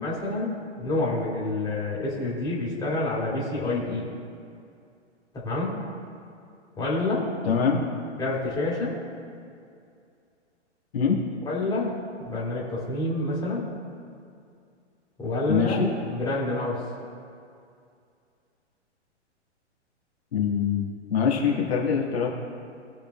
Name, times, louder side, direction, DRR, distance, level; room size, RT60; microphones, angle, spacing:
voice 1, 0.0-4.1 5.4-5.8 6.8-7.2 8.2-8.9 11.5-11.9 12.2-13.7 15.2-15.8 16.1-16.8, left 2 dB, 10° left, -6 dB, 2.3 m, -28 dB
voice 2, 7.4-7.8 10.9-11.2 15.5-15.9 20.3-22.3, left 6 dB, 60° left, -2 dB, 1.6 m, -24 dB
18.5 x 6.8 x 2.3 m, 2.4 s
figure-of-eight pair, 110°, 35 cm